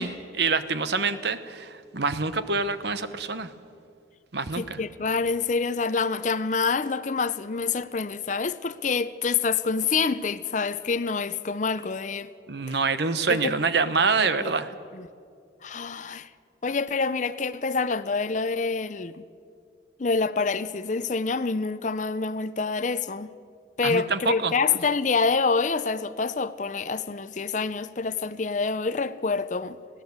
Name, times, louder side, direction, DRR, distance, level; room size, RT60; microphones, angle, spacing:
voice 1, 0.0-3.5 4.3-4.8 12.5-14.7 23.8-24.5, right 4 dB, 60° right, 1.0 m, -26 dB
voice 2, 4.6-12.3 12.7-12.8 13.3-13.5 14.2-14.5 14.9-15.1 15.6-16.3 16.6-19.2 20.0-23.3 23.8-29.8, left 4 dB, 40° left, 0.5 m, -27 dB
20.0 x 16.5 x 8.0 m
head